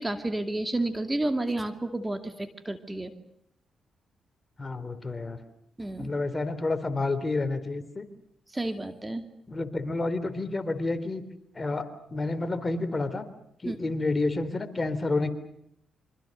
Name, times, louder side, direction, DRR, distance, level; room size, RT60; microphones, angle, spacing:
voice 1, 0.0-3.1 5.8-6.1 8.5-9.3 13.6-13.8, right 2 dB, 15° right, 8 dB, 2.4 m, -31 dB
voice 2, 4.6-5.4 6.0-8.1 9.5-11.2 11.6-13.3 13.6-15.3, left 2 dB, 30° left, 11 dB, 3.4 m, -29 dB
27.0 x 25.5 x 6.6 m, 0.73 s
supercardioid pair, 60°, 0 cm